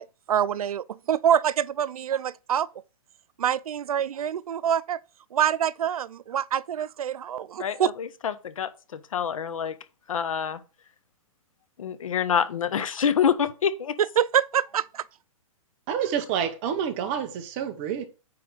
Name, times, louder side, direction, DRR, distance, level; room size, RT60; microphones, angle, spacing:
voice 1, 0.0-2.7 3.4-5.0 5.3-7.9 14.2-15.0, right 9 dB, 90° right, 0.5 m, -26 dB
voice 2, 7.6-9.7 10.1-10.6 11.8-14.0, left 7 dB, 65° left, 1.1 m, -27 dB
voice 3, 15.9-18.1, right 8 dB, 20° right, 0.9 m, -28 dB
9.8 x 3.4 x 6.2 m
hypercardioid pair, 175°, 18 cm